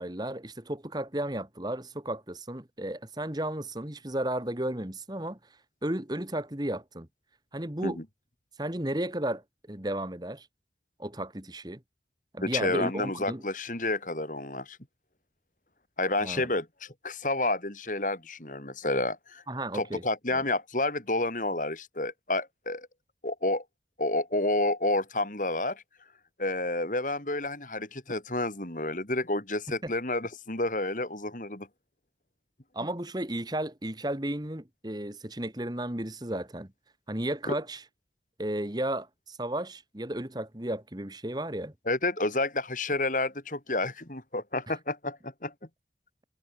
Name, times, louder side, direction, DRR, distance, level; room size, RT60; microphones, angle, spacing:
voice 1, 0.0-5.4 5.8-7.1 7.5-8.0 8.6-9.4 9.7-10.5 11.0-11.8 12.3-13.4 16.2-16.5 19.5-20.0 20.3-20.4 29.8-29.9 32.7-36.7 37.1-37.8 38.4-41.7 44.7-44.8, right 1 dB, 25° right, 1.7 m, -33 dB
voice 2, 12.4-14.8 16.0-19.4 19.7-22.9 23.2-23.6 24.0-25.8 26.4-31.7 37.5-37.6 41.9-45.5, left 2 dB, 45° left, 3.4 m, -30 dB
head